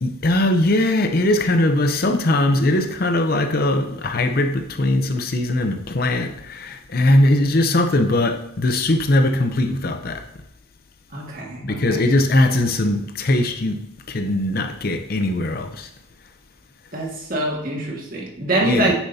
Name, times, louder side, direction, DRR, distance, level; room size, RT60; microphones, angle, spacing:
voice 1, 0.0-10.2 11.6-13.8 14.1-15.9 18.6-18.9, left 1 dB, 45° left, 0.6 m, -20 dB
voice 2, 11.1-12.1 16.9-18.9, right 1 dB, 40° right, 1.8 m, -24 dB
9.0 x 7.3 x 2.8 m
head